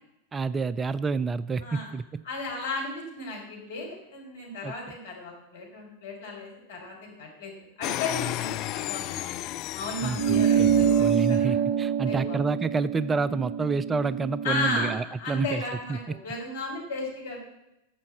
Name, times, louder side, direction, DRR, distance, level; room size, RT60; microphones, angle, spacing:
voice 1, 0.3-2.2 4.6-4.7 10.0-10.7 11.0-16.0, right 4 dB, 15° right, 17 dB, 0.3 m, -29 dB
voice 2, 2.2-9.3 9.7-11.6 12.0-12.4 14.4-17.4, left 2 dB, 60° left, -1 dB, 4.6 m, -34 dB
sound 1, 7.8-11.4, left 15 dB, 40° left, 0.5 m, -33 dB
sound 2, 10.2-15.0, right 8 dB, 60° right, 0.7 m, -25 dB
11.5 x 7.0 x 7.7 m, 0.89 s
figure-of-eight pair, 90°, 0 cm